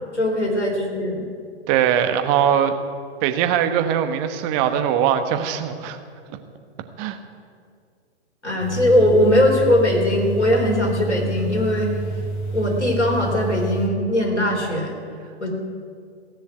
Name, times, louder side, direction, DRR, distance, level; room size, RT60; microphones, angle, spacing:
voice 1, 0.1-1.3 8.4-11.9 12.5-15.0 15.4-15.5, left 1 dB, 85° left, 0 dB, 3.8 m, -20 dB
voice 2, 1.7-2.7 3.2-6.0 7.0-7.2, right 9 dB, 30° right, 8 dB, 1.1 m, -21 dB
sound 1, 8.6-13.9, right 3 dB, 45° left, 2.8 m, -28 dB
16.0 x 7.2 x 9.0 m, 2.2 s
figure-of-eight pair, 115°, 34 cm